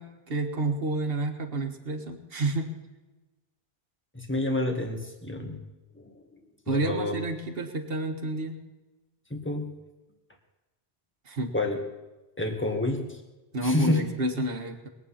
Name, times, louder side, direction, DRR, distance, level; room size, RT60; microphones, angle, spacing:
voice 1, 0.0-2.8 6.7-8.6 11.3-11.5 13.5-14.9, right 2 dB, 65° right, 2 dB, 1.7 m, -30 dB
voice 2, 4.1-5.6 6.0-6.1 6.7-7.1 9.3-9.7 11.5-11.8 12.4-13.2 13.6-14.0, left 2 dB, 10° left, 3 dB, 2.0 m, -28 dB
21.5 x 9.0 x 5.7 m, 1.1 s
omnidirectional pair, 1.1 m